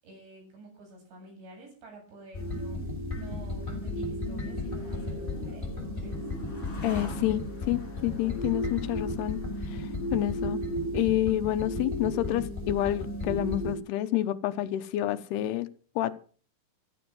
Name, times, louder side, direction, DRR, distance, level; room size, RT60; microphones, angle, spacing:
voice 1, 0.0-6.2, right 2 dB, 65° right, 2 dB, 9.9 m, -49 dB
sound 1, 2.3-13.8, left 1 dB, 10° left, 5.1 m, -34 dB
sound 2, 3.5-10.9, left 2 dB, 35° left, 4.7 m, -47 dB
voice 2, 6.8-9.4 9.7-10.6 10.9-15.7 16.0-16.2, left 13 dB, 75° left, 11 dB, 2.6 m, -29 dB
14.5 x 14.0 x 6.2 m, 0.42 s
omnidirectional pair, 5.4 m